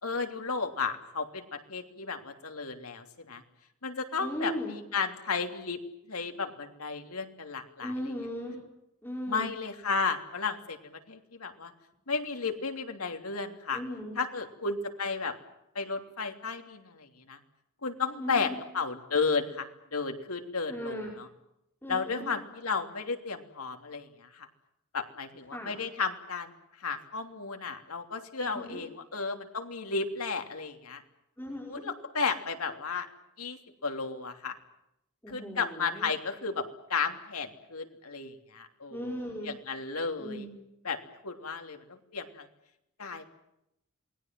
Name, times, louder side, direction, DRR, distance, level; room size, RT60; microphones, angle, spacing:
voice 1, 0.0-3.4 3.8-5.8 6.1-8.1 9.3-11.7 12.1-13.8 14.1-15.3 15.7-17.4 17.8-21.3 21.9-24.5 24.9-26.5 26.8-31.0 31.7-33.1 33.4-34.5 35.3-36.6 36.9-40.5 40.8-41.0 41.2-42.5 43.0-43.2, left 4 dB, 85° left, 5 dB, 3.2 m, -33 dB
voice 2, 4.2-4.7 7.8-8.6 9.0-9.5 13.7-14.2 18.2-18.6 20.7-21.1 21.8-22.3 25.5-25.7 28.4-28.8 31.4-31.8 35.2-36.1 38.9-39.5 40.2-40.5, equal, 10° left, -2 dB, 5.2 m, -37 dB
28.0 x 21.0 x 7.7 m, 0.83 s
head